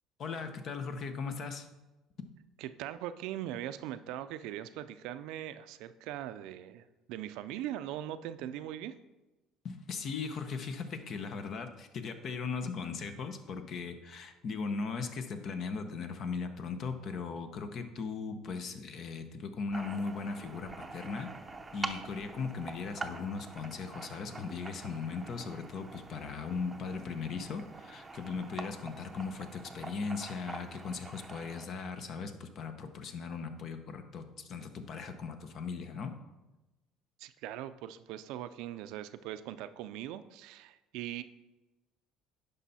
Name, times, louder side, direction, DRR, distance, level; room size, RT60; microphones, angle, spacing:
voice 1, 0.2-1.7 9.6-21.3 21.7-36.1, left 5 dB, 50° left, 8 dB, 0.9 m, -38 dB
voice 2, 2.6-8.9 37.2-41.2, right 12 dB, 75° right, 12 dB, 0.4 m, -41 dB
sound 1, 19.7-31.6, right 3 dB, 15° right, 0.7 m, -45 dB
10.0 x 5.5 x 4.2 m, 1.1 s
cardioid pair, 105°, 0 cm